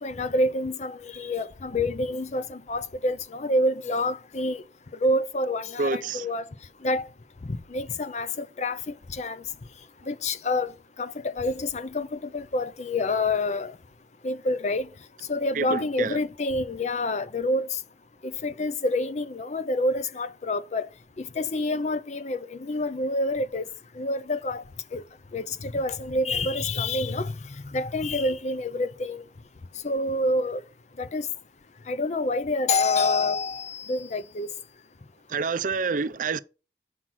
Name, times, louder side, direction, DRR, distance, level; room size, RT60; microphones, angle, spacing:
voice 1, 0.0-4.6 5.0-6.4 6.8-7.1 7.5-8.8 9.1-9.4 10.1-10.7 11.0-13.7 14.2-14.9 15.3-17.7 18.2-20.9 21.2-23.7 24.0-24.6 24.9-25.0 25.3-27.3 27.7-29.2 29.8-30.6 31.0-31.3 31.9-34.5, left 2 dB, 40° left, 0.5 m, -27 dB
voice 2, 5.8-6.3 15.5-16.2 35.3-36.4, right 4 dB, 45° right, 0.4 m, -28 dB
7.2 x 5.7 x 6.1 m
head